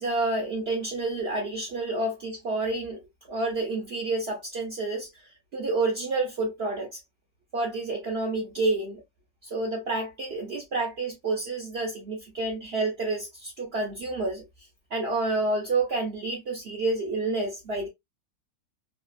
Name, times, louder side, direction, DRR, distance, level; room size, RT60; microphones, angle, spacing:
voice 1, 0.0-3.0 3.3-5.1 5.5-7.0 7.5-9.0 9.4-14.4 14.9-17.9, right 2 dB, 55° right, 0.8 m, -29 dB
2.9 x 2.4 x 2.3 m
omnidirectional pair, 1.5 m